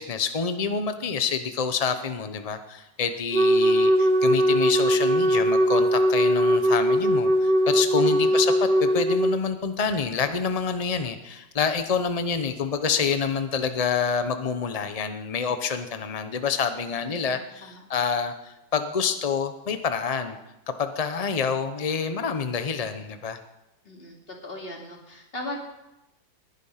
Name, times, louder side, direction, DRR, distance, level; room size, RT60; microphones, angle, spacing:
voice 1, 0.0-20.4 20.8-23.4, left 6 dB, 60° left, 9 dB, 0.3 m, -27 dB
Wind instrument woodwind instrument, 3.3-9.4, equal, 50° right, 0.6 m, -20 dB
voice 2, 8.0-8.4 17.1-17.8 23.8-25.6, left 1 dB, 30° left, 0 dB, 3.0 m, -39 dB
20.0 x 10.5 x 5.7 m, 0.94 s
omnidirectional pair, 2.1 m